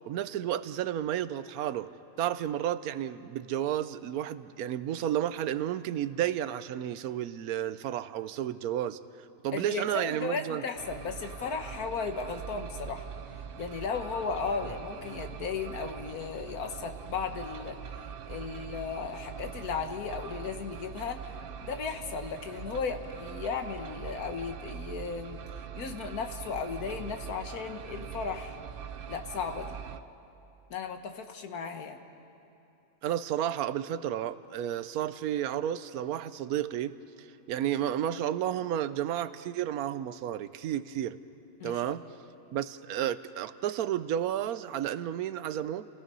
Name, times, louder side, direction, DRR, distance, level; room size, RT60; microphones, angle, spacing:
voice 1, 0.1-1.9 2.2-9.0 9.4-10.6 14.6-14.7 33.0-41.2 41.6-42.0 42.5-45.9, right 11 dB, 80° right, 14 dB, 1.1 m, -32 dB
voice 2, 9.5-13.1 13.6-17.8 18.3-21.2 21.6-25.4 25.7-28.6 29.1-29.8 30.7-32.0 41.6-42.0, left 5 dB, 90° left, 6 dB, 1.7 m, -35 dB
sound 1, 10.8-30.0, right 8 dB, 60° right, 0.6 m, -43 dB
29.0 x 17.0 x 5.4 m, 2.8 s
omnidirectional pair, 1.5 m